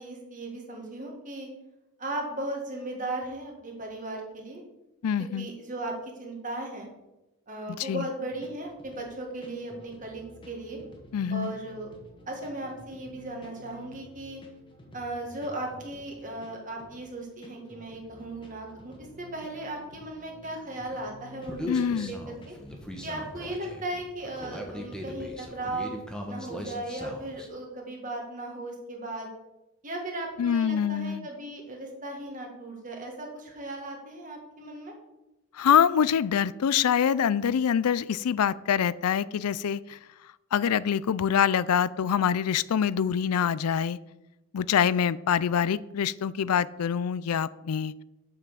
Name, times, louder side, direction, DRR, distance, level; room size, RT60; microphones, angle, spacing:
voice 1, 0.0-1.5 2.0-4.6 5.2-6.9 7.5-10.8 11.3-11.9 12.3-14.4 14.9-22.5 23.0-25.9 26.3-29.3 29.8-34.9, right 1 dB, 35° right, 1 dB, 1.9 m, -37 dB
voice 2, 5.0-5.5 7.7-8.1 11.1-11.5 21.7-22.1 30.4-31.3 35.5-40.0 40.5-44.0 44.5-47.9, left 8 dB, 90° left, 19 dB, 0.4 m, -25 dB
sound 1, 8.3-25.4, equal, 20° left, 1.5 m, -52 dB
Human voice, 21.5-27.5, equal, 5° left, 1.0 m, -39 dB
7.4 x 5.9 x 6.9 m, 0.97 s
head